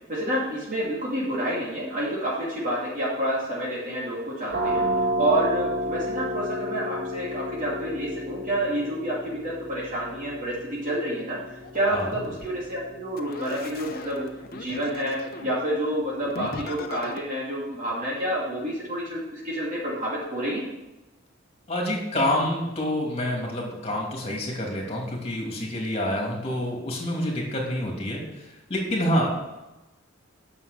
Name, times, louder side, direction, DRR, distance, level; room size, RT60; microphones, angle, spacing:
voice 1, 0.1-4.8 5.2-14.2 14.5-20.6, right 1 dB, 40° right, -5 dB, 2.6 m, -29 dB
sound 1, 4.5-16.0, equal, 60° right, 1.7 m, -32 dB
sound 2, 11.6-12.5 13.1-15.6 16.2-17.2, left 2 dB, 50° left, 0.9 m, -38 dB
voice 2, 21.7-28.2 28.7-29.3, left 1 dB, 30° left, -1 dB, 2.8 m, -27 dB
9.6 x 6.6 x 6.7 m, 1.0 s
head